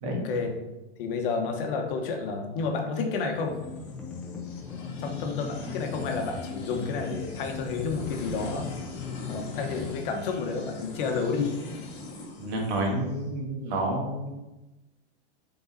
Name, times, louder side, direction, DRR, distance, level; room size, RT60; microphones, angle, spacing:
voice 1, 0.0-0.5 1.0-3.6 4.7-8.7 9.3-11.6, left 4 dB, 55° left, 4 dB, 1.2 m, -30 dB
sound 1, 3.3-9.9, left 5 dB, 5° left, 0.7 m, -39 dB
sound 2, 3.5-13.2, left 2 dB, 35° left, 1.4 m, -42 dB
voice 2, 12.4-14.4, right 1 dB, 50° right, 1 dB, 1.6 m, -29 dB
6.7 x 4.1 x 4.0 m, 1.0 s
supercardioid pair, 165°, 33 cm